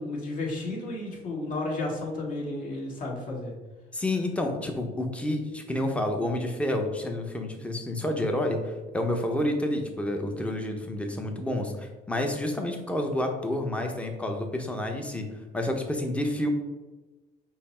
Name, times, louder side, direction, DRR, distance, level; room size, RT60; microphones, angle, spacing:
voice 1, 0.0-3.5, left 2 dB, 50° left, -3 dB, 1.5 m, -32 dB
voice 2, 3.9-15.3 15.5-16.5, left 1 dB, 5° left, 3 dB, 0.7 m, -29 dB
5.6 x 2.0 x 4.2 m, 1.2 s
cardioid pair, 110°, 17 cm